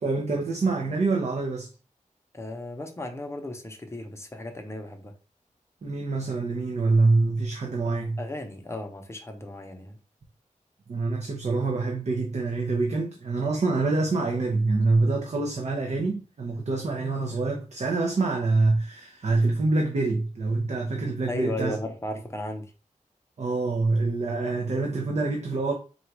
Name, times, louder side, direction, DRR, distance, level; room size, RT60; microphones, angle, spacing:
voice 1, 0.0-1.7 5.8-8.2 10.9-21.8 23.4-25.7, right 3 dB, 55° right, 0.7 m, -25 dB
voice 2, 2.3-5.1 7.8-10.0 21.3-22.7, left 1 dB, 20° left, 0.7 m, -35 dB
3.9 x 2.3 x 4.6 m
wide cardioid pair, 135°, 14 cm